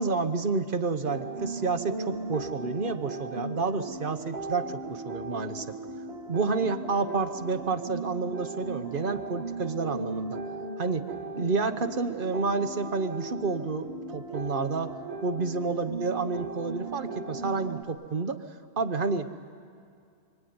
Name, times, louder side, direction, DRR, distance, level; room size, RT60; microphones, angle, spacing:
voice 1, 0.0-5.7 6.3-10.4 10.8-11.1 11.4-15.0 15.2-18.4 18.8-19.3, right 4 dB, 55° right, 9 dB, 1.3 m, -30 dB
sound 1, 1.0-17.8, right 3 dB, 75° right, 1.8 m, -37 dB
25.5 x 24.0 x 9.6 m, 2.3 s
omnidirectional pair, 1.1 m